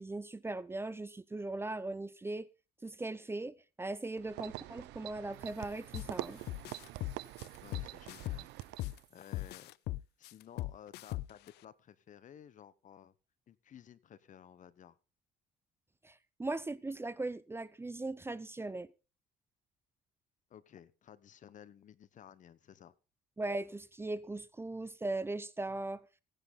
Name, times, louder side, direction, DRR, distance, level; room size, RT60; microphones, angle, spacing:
voice 1, 0.0-2.5 2.8-6.4 16.0-18.9 23.4-26.0, right 2 dB, 15° right, 0.7 m, -39 dB
sound 1, 4.2-9.0, right 17 dB, 90° right, 0.7 m, -45 dB
sound 2, 5.3-10.1, right 5 dB, 40° right, 5.9 m, -68 dB
sound 3, 5.9-6.1 6.5-9.0 9.3-11.5, left 17 dB, 75° left, 0.5 m, -39 dB
voice 2, 7.6-8.5 9.1-9.7 10.2-13.1 13.5-15.0 20.5-22.9, left 9 dB, 50° left, 1.0 m, -55 dB
17.0 x 10.0 x 3.8 m
cardioid pair, 110°, 17 cm